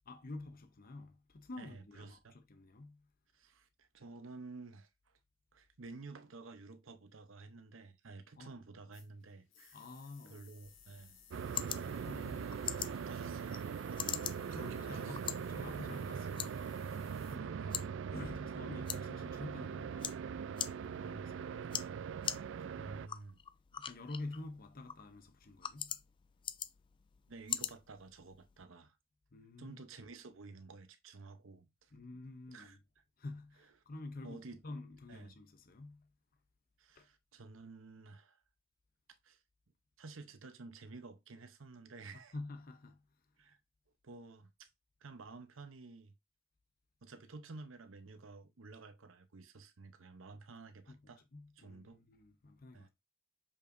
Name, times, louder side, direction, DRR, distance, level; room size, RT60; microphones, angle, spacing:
voice 1, 0.1-3.1 8.4-8.5 9.7-10.5 11.8-12.7 14.1-14.2 14.5-16.6 17.3-17.7 18.1-20.2 20.8-21.9 22.6-23.0 23.8-26.0 29.3-29.8 31.9-32.8 33.2-36.1 36.9-37.1 42.1-43.0 50.9-51.0 51.3-52.9, left 2 dB, 45° left, 0.7 m, -49 dB
voice 2, 1.6-2.4 3.3-5.2 5.5-9.8 10.3-11.2 12.9-13.6 13.9-14.1 14.5-15.4 17.3-17.9 21.0-21.6 22.7-23.4 27.3-28.9 29.6-31.9 32.5-33.0 34.2-34.6 35.1-35.3 36.8-38.4 39.2-39.4 40.0-42.3 43.4-43.6 44.0-44.7 45.0-46.1 47.0-51.2 51.6-52.0 52.7-52.9, right 3 dB, 90° right, 0.8 m, -52 dB
sound 1, 8.9-17.4, left 7 dB, 85° left, 1.8 m, -62 dB
sound 2, 10.6-28.6, left 9 dB, 25° left, 0.3 m, -45 dB
sound 3, 11.3-23.1, right 6 dB, 65° right, 0.3 m, -41 dB
6.7 x 5.4 x 2.6 m
head